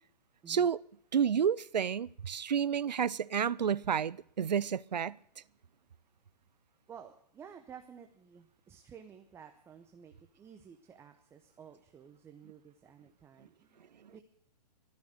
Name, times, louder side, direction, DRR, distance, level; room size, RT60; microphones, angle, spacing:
voice 1, 0.5-0.8 1.1-5.2, right 7 dB, 90° right, 0.5 m, -30 dB
voice 2, 6.9-14.2, right 7 dB, 10° right, 0.7 m, -53 dB
12.5 x 10.5 x 7.8 m
hypercardioid pair, 130°, 21 cm